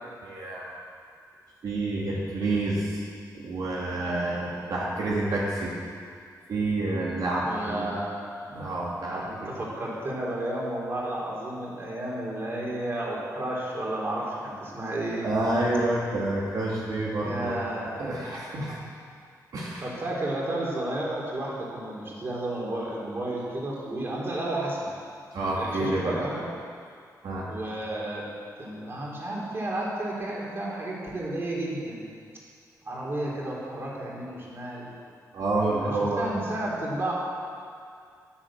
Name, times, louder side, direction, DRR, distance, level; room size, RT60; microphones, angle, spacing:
voice 1, 0.2-0.7 1.6-3.0 3.3-5.7 6.5-7.9 8.5-9.5 15.2-17.5 18.0-18.8 19.5-20.0 25.3-26.2 27.2-27.5 35.3-36.3, right 2 dB, 75° right, -5 dB, 2.7 m, -28 dB
voice 2, 7.4-8.2 9.2-15.3 17.2-18.0 19.8-24.9 25.6-26.4 27.4-28.3 28.6-32.1 32.8-34.9 35.8-37.1, right 1 dB, 35° right, -4 dB, 3.9 m, -32 dB
14.5 x 11.0 x 7.7 m, 2.2 s
wide cardioid pair, 130°, 7 cm